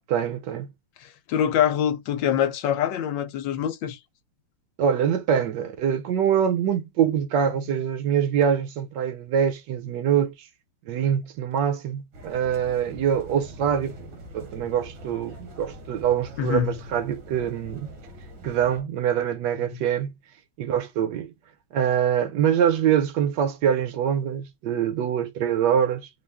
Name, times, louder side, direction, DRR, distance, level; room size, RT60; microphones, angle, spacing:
voice 1, 0.1-0.7 4.8-10.5 10.9-13.9 14.3-17.9 18.4-20.1 20.6-21.3 21.7-26.1, right 8 dB, 70° right, 1.3 m, -24 dB
voice 2, 1.0-4.0 16.4-16.8 19.7-19.8, left 10 dB, 75° left, 1.3 m, -25 dB
sound 1, 12.1-18.8, equal, 85° right, 1.9 m, -43 dB
3.8 x 2.5 x 3.4 m
omnidirectional pair, 2.2 m